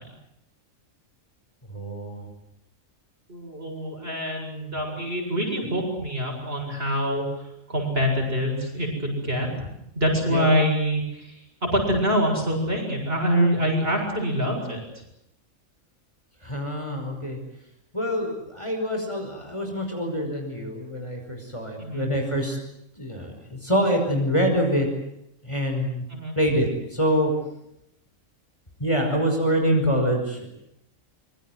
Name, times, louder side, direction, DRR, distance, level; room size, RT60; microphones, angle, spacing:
voice 1, 1.7-2.2 9.3-9.5 10.3-10.5 16.4-17.4 17.9-22.6 23.0-24.9 25.4-26.0 26.4-27.3 28.8-30.5, equal, 20° left, 2 dB, 5.5 m, -25 dB
voice 2, 3.3-7.4 7.7-9.7 9.9-15.0 21.8-22.1 26.1-26.4, equal, 45° right, 1 dB, 7.9 m, -25 dB
25.0 x 24.5 x 8.0 m, 0.79 s
omnidirectional pair, 1.4 m